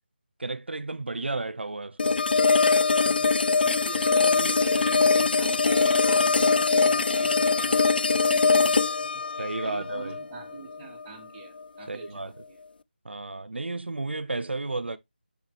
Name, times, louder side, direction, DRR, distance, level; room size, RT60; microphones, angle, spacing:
voice 1, 0.4-2.2 9.4-10.2 11.9-12.3 13.0-15.0, right 3 dB, 85° right, 0.7 m, -32 dB
sound 1, 2.0-11.0, left 4 dB, 60° left, 0.4 m, -22 dB
voice 2, 3.0-8.9 9.3-12.6, right 4 dB, 15° right, 1.9 m, -42 dB
6.4 x 5.6 x 3.2 m
figure-of-eight pair, 165°, 6 cm